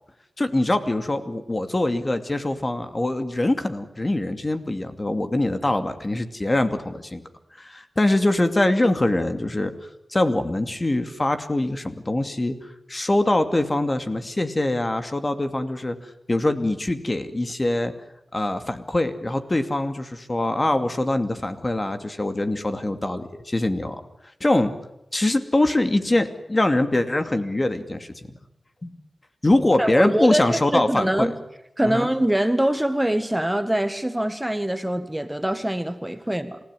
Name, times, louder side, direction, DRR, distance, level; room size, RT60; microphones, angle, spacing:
voice 1, 0.4-7.2 7.6-9.7 10.1-17.9 18.3-24.0 24.4-24.7 25.1-28.1 28.8-28.9 29.4-31.3 31.8-32.1, left 1 dB, 35° left, 9 dB, 2.5 m, -23 dB
voice 2, 29.8-31.3 31.8-36.6, right 1 dB, 10° right, 10 dB, 1.7 m, -23 dB
28.5 x 16.5 x 9.8 m, 0.86 s
cardioid pair, 55°, 0 cm